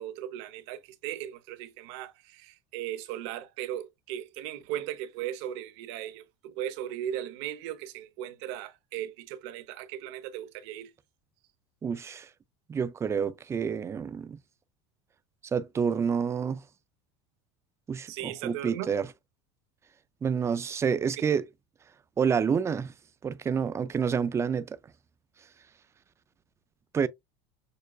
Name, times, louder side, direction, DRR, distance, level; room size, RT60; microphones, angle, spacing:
voice 1, 0.0-10.9 18.1-18.9, right 11 dB, 70° right, 0.9 m, -37 dB
voice 2, 11.8-12.3 12.7-14.4 15.5-16.6 17.9-19.1 20.2-21.4 22.2-22.9 23.2-24.8 26.9-27.1, right 6 dB, 20° right, 0.4 m, -28 dB
6.6 x 2.4 x 2.3 m
supercardioid pair, 125°, 15 cm